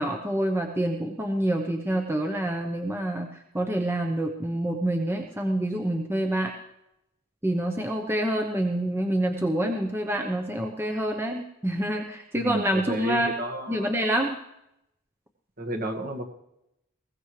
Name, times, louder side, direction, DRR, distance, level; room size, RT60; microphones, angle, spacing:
voice 1, 0.0-3.3 3.5-6.5 7.4-13.3 13.7-14.4, right 1 dB, 10° right, 2 dB, 1.0 m, -27 dB
voice 2, 12.3-14.0 15.6-16.2, right 1 dB, 45° right, 3 dB, 1.9 m, -32 dB
21.0 x 17.5 x 3.3 m, 0.84 s
head